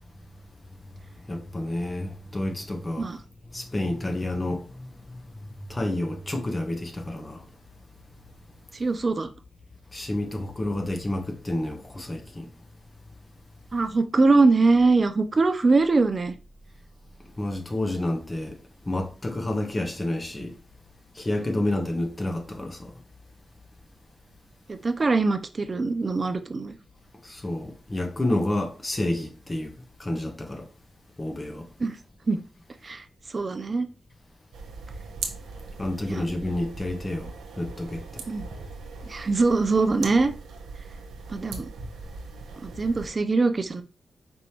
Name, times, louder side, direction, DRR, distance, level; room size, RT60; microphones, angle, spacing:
voice 1, 1.3-3.1 3.5-4.9 5.7-7.4 9.9-12.5 17.4-18.6 18.9-20.5 21.2-22.9 27.2-29.7 30.0-30.7 31.2-31.7 35.8-38.0, left 1 dB, 30° left, 1.2 m, -29 dB
voice 2, 8.7-9.3 13.7-16.3 21.5-21.6 24.7-26.8 31.8-32.0 32.3-32.4 32.8-33.9 36.1-36.3 38.3-38.5 39.0-40.3 41.3-41.7 42.6-43.8, right 3 dB, 45° right, 0.5 m, -23 dB
sound 1, 34.5-43.1, right 4 dB, 80° right, 0.8 m, -40 dB
5.2 x 3.4 x 2.9 m
supercardioid pair, 45°, 0 cm